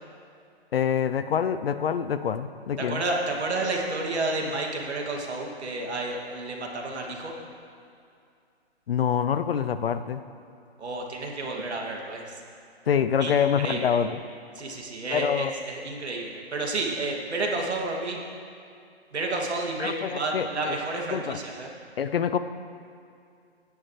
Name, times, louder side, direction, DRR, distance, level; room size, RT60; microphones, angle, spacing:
voice 1, 0.7-3.0 8.9-10.2 12.9-14.2 15.1-15.5 19.8-20.8 21.1-21.4 22.0-22.4, left 8 dB, 60° left, 11 dB, 0.7 m, -26 dB
voice 2, 2.8-7.3 10.8-12.2 13.2-14.0 14.5-18.2 19.1-21.7, right 2 dB, 85° right, 0 dB, 2.6 m, -30 dB
16.5 x 11.0 x 3.3 m, 2.4 s
hypercardioid pair, 160°, 33 cm